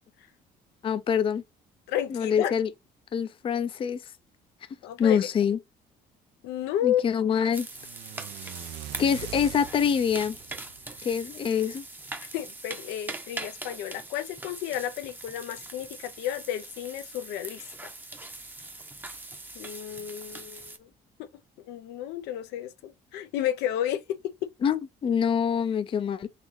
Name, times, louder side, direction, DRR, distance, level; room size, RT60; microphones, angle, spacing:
voice 1, 0.8-1.4 2.1-2.7 3.1-4.0 5.0-5.6 6.8-7.7 9.0-10.4 11.0-11.9 24.6-26.3, left 7 dB, 30° left, 0.4 m, -25 dB
voice 2, 1.9-2.5 4.8-5.2 6.4-7.0 12.3-17.9 19.5-20.9 21.7-24.0, left 11 dB, 90° left, 0.6 m, -32 dB
sound 1, 7.5-20.8, right 2 dB, 10° right, 0.7 m, -42 dB
sound 2, 7.7-11.8, right 12 dB, 80° right, 0.5 m, -43 dB
4.2 x 2.8 x 3.1 m
cardioid pair, 110°, 17 cm